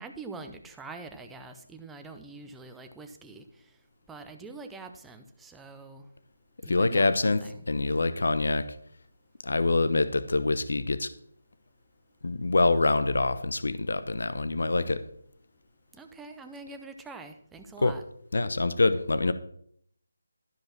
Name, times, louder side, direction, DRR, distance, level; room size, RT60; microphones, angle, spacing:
voice 1, 0.0-3.8 4.1-6.1 6.6-7.6 14.8-14.9 16.0-18.0, right 3 dB, 5° right, 6 dB, 0.7 m, -44 dB
voice 2, 6.7-7.4 7.7-8.7 9.4-11.1 12.2-15.0 17.8-17.9 18.3-19.3, left 3 dB, 70° left, 13 dB, 0.8 m, -25 dB
12.5 x 5.2 x 5.9 m, 0.66 s
figure-of-eight pair, 165°, 0 cm